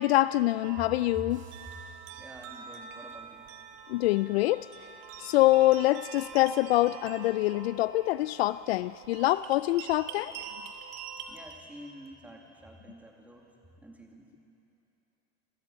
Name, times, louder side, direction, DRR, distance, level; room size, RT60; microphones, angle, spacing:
voice 1, 0.0-1.4 3.9-4.7 5.2-10.3, left 17 dB, 60° left, 16 dB, 0.5 m, -25 dB
sound 1, 0.6-11.6, right 6 dB, 50° right, 2.4 m, -45 dB
sound 2, 1.3-2.9, right 3 dB, 20° right, 7.8 m, -64 dB
voice 2, 2.2-3.4 11.3-13.5 13.8-14.3, right 1 dB, 5° right, 1 dB, 2.2 m, -47 dB
28.5 x 16.5 x 8.9 m, 2.9 s
supercardioid pair, 155°, 36 cm